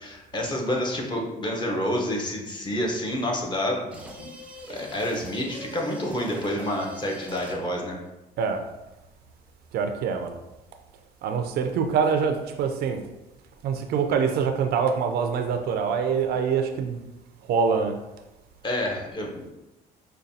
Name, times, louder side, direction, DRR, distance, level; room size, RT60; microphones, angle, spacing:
voice 1, 0.0-4.3 4.7-8.0 18.6-19.5, left 1 dB, 25° left, 0 dB, 0.8 m, -28 dB
sound 1, 3.9-7.8, equal, 10° right, 0.6 m, -42 dB
voice 2, 9.7-10.4 11.2-13.0 13.6-17.0 17.5-17.9, right 6 dB, 70° right, 6 dB, 0.4 m, -25 dB
5.1 x 2.3 x 2.7 m, 0.99 s
cardioid pair, 110°, 17 cm